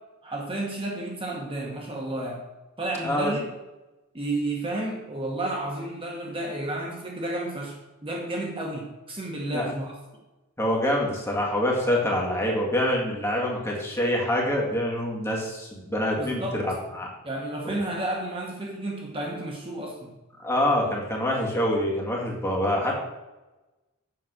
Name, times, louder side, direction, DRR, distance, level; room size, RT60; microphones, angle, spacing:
voice 1, 0.2-2.4 2.8-3.4 4.1-9.9 16.2-16.6 17.2-20.2, right 1 dB, 25° right, 0 dB, 1.0 m, -31 dB
voice 2, 10.6-16.6 16.9-17.1 20.4-22.9, left 1 dB, 15° left, -3 dB, 2.0 m, -25 dB
7.7 x 4.9 x 6.2 m, 1.1 s
head